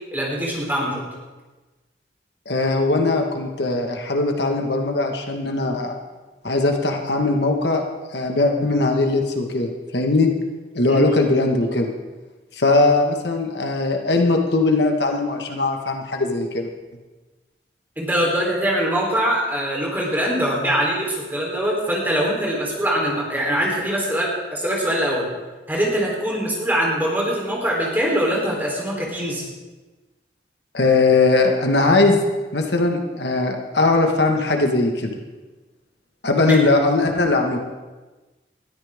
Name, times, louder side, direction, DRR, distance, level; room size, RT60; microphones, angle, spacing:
voice 1, 0.1-1.0 10.9-11.1 18.0-25.3 25.7-29.4 36.4-36.6, equal, 10° right, -3 dB, 3.6 m, -23 dB
voice 2, 2.4-6.0 6.4-7.8 8.1-10.3 10.7-11.9 12.5-16.7 30.7-32.2 32.5-35.1 36.2-37.6, left 3 dB, 75° left, 3 dB, 1.6 m, -20 dB
20.5 x 13.5 x 3.6 m, 1.2 s
head